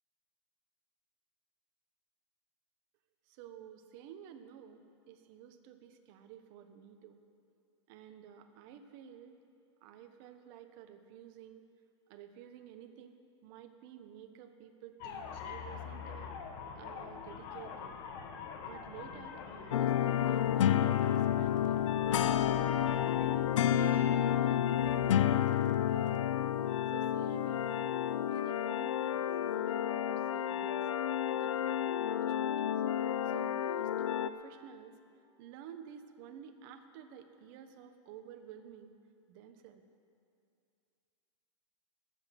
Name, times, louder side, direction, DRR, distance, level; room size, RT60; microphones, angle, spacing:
voice 1, 3.3-4.8 5.1-7.2 7.9-9.4 9.8-11.6 12.1-16.3 16.8-18.0 18.6-22.7 23.1-26.3 26.9-28.0 28.3-30.9 31.3-32.8 33.2-34.9 35.4-38.9 39.3-39.8, right 8 dB, 45° right, 7 dB, 1.3 m, -51 dB
sound 1, 15.0-25.4, left 6 dB, 45° left, 1.5 m, -46 dB
sound 2, 19.7-34.3, left 10 dB, 85° left, 0.6 m, -30 dB
20.5 x 8.3 x 6.0 m, 2.5 s
hypercardioid pair, 140°, 16 cm